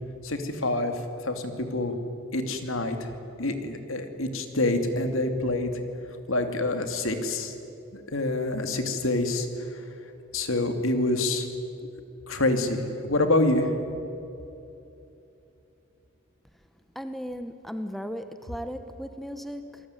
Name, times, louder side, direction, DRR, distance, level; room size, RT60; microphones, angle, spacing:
voice 1, 0.2-0.9 1.2-1.9 2.3-3.1 3.4-5.7 6.3-7.5 7.9-9.5 10.3-11.5 12.3-13.7, left 2 dB, 75° left, 7 dB, 2.7 m, -26 dB
voice 2, 16.9-19.8, equal, ahead, 9 dB, 1.0 m, -36 dB
27.5 x 19.5 x 9.7 m, 2.9 s
head